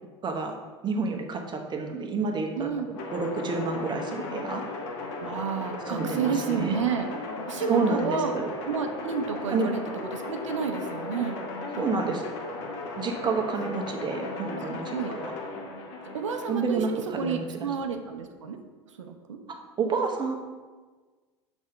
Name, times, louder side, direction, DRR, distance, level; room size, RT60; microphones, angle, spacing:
voice 1, 0.2-0.6 0.8-4.7 5.9-6.7 7.7-8.5 9.5-9.7 11.8-12.3 13.0-15.3 16.5-17.7 19.5-20.3, right 4 dB, 30° right, 3 dB, 1.1 m, -29 dB
sound 1, 2.9-16.7, left 2 dB, 60° left, 1.4 m, -36 dB
voice 2, 5.2-7.1 7.5-8.3 8.7-9.8 10.1-11.4 11.7-12.0 14.9-15.2 16.1-18.6 19.0-19.4, right 6 dB, 80° right, 6 dB, 0.7 m, -30 dB
6.2 x 3.5 x 5.7 m, 1.4 s
hypercardioid pair, 80°, 16 cm